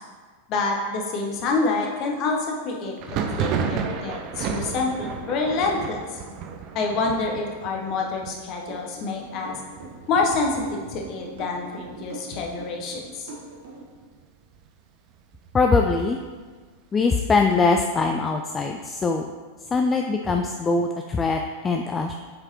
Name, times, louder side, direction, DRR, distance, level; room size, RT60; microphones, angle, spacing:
voice 1, 0.5-6.0 6.7-9.6 10.1-13.3, left 3 dB, 40° left, 1 dB, 1.0 m, -27 dB
Thunder, 3.0-12.5 12.8-13.4 13.7-14.7 15.1-16.8, right 6 dB, 40° right, 0.5 m, -33 dB
sound 1, 8.7-13.9, right 2 dB, 55° right, 1.6 m, -41 dB
voice 2, 15.5-16.2 16.9-19.3 19.7-22.1, left 4 dB, 20° left, 4 dB, 0.3 m, -22 dB
7.3 x 4.8 x 3.0 m, 1.5 s
figure-of-eight pair, 90°, 0 cm